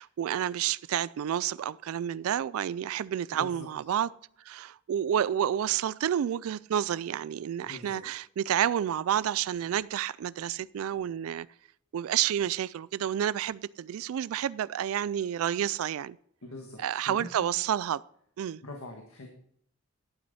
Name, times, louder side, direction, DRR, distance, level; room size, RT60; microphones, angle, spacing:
voice 1, 0.0-4.1 4.4-11.5 11.9-16.2 16.8-18.0 18.4-18.6, right 10 dB, 80° right, 0.3 m, -30 dB
voice 2, 3.3-3.7 7.6-8.0 16.4-17.5 18.6-19.3, left 2 dB, 85° left, 1.6 m, -43 dB
11.5 x 8.7 x 4.2 m
head